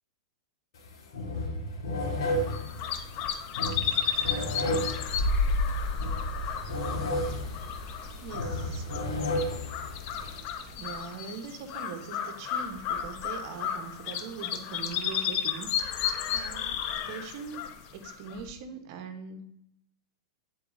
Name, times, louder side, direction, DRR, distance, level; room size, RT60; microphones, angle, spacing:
sound 1, 0.7-0.9 1.1-10.4, left 1 dB, 70° left, 1.7 m, -33 dB
sound 2, 2.4-18.5, left 9 dB, 45° left, 0.7 m, -34 dB
sound 3, 3.8-11.1, left 1 dB, 30° left, 2.1 m, -34 dB
voice 1, 8.2-8.9 10.8-17.6 17.9-19.4, right 6 dB, 55° right, 7 dB, 1.0 m, -42 dB
8.9 x 4.0 x 2.6 m, 0.78 s
hypercardioid pair, 110°, 3 cm